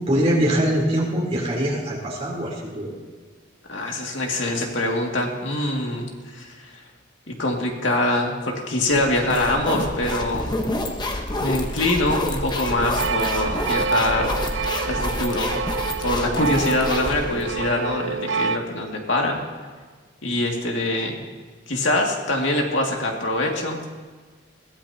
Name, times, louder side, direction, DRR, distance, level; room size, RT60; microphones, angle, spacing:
voice 1, 0.1-2.9 11.3-11.4, equal, 30° right, -4 dB, 3.5 m, -23 dB
voice 2, 3.7-6.7 7.3-10.6 11.4-14.3 14.8-15.5 16.0-19.4 20.2-21.2 21.7-23.8, left 1 dB, 75° left, 0 dB, 2.3 m, -24 dB
sound 1, 8.9-17.7, left 1 dB, 20° left, 1.1 m, -28 dB
sound 2, 13.0-18.6, right 5 dB, 70° right, 0.4 m, -27 dB
21.5 x 17.0 x 2.9 m, 1.4 s
head